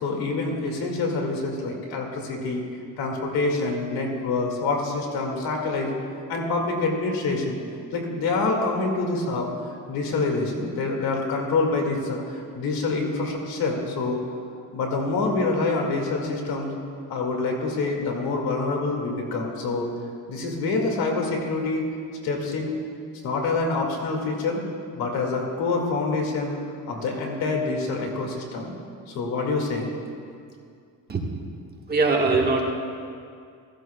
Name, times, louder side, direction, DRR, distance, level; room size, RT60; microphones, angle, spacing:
voice 1, 0.0-2.7 3.0-5.9 6.3-7.6 7.9-14.2 14.7-16.7 17.1-19.9 20.3-21.9 22.2-22.8 23.2-24.6 24.9-26.6 26.9-28.7 29.1-29.9, left 3 dB, 90° left, 1 dB, 2.2 m, -26 dB
voice 2, 31.9-32.6, right 3 dB, 25° right, 0 dB, 1.4 m, -21 dB
15.5 x 15.5 x 2.3 m, 2.3 s
cardioid pair, 145°, 35 cm